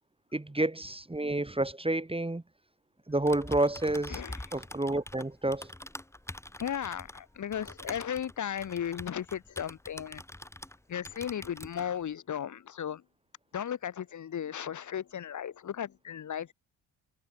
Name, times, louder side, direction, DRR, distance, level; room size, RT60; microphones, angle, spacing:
voice 1, 0.3-2.4 3.1-4.2 4.5-5.7, right 2 dB, 15° right, 2.1 m, -29 dB
Typing, 3.1-10.8 11.0-11.9, left 1 dB, 5° left, 1.8 m, -45 dB
voice 2, 4.1-4.4 6.6-10.2 10.9-13.0 13.5-16.5, left 9 dB, 45° left, 1.1 m, -35 dB
supercardioid pair, 50°, 42 cm